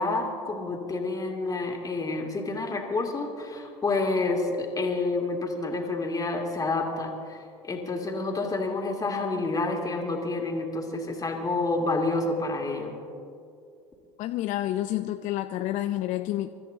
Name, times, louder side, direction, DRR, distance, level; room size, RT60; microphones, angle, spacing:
voice 1, 0.0-7.4 7.6-12.9, left 3 dB, 20° left, 1 dB, 2.7 m, -29 dB
voice 2, 14.2-16.5, left 14 dB, 50° left, 8 dB, 0.6 m, -29 dB
29.0 x 13.5 x 2.8 m, 2.5 s
hypercardioid pair, 70°, 16 cm